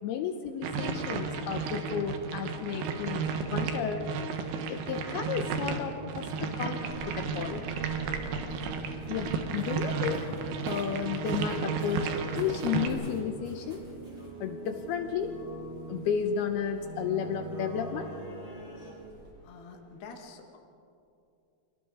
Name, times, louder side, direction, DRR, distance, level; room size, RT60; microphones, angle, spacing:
voice 1, 0.0-4.1 4.7-7.7 9.1-10.3 10.7-13.8 14.4-15.4 15.9-18.1, left 7 dB, 75° left, 6 dB, 2.6 m, -33 dB
sound 1, 0.6-12.9, right 5 dB, 70° right, 3.2 m, -33 dB
sound 2, 4.8-18.9, right 2 dB, 30° left, 6.9 m, -44 dB
sound 3, 6.9-19.3, right 1 dB, 25° right, 4.3 m, -52 dB
voice 2, 19.4-20.6, left 4 dB, 45° left, 2 dB, 1.7 m, -47 dB
29.5 x 24.0 x 3.9 m, 2.6 s
omnidirectional pair, 5.1 m